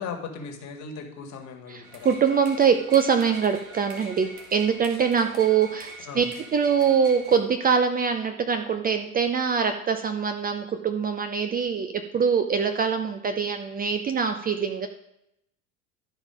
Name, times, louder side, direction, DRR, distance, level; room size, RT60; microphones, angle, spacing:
voice 1, 0.0-2.1 6.1-6.3, left 5 dB, 40° left, 3 dB, 1.9 m, -37 dB
voice 2, 1.7-6.2 6.5-14.9, right 6 dB, 20° right, 7 dB, 0.7 m, -23 dB
sound 1, 1.8-7.4, right 2 dB, 85° right, 1.6 m, -44 dB
12.0 x 4.8 x 4.9 m, 0.81 s
figure-of-eight pair, 75°, 43 cm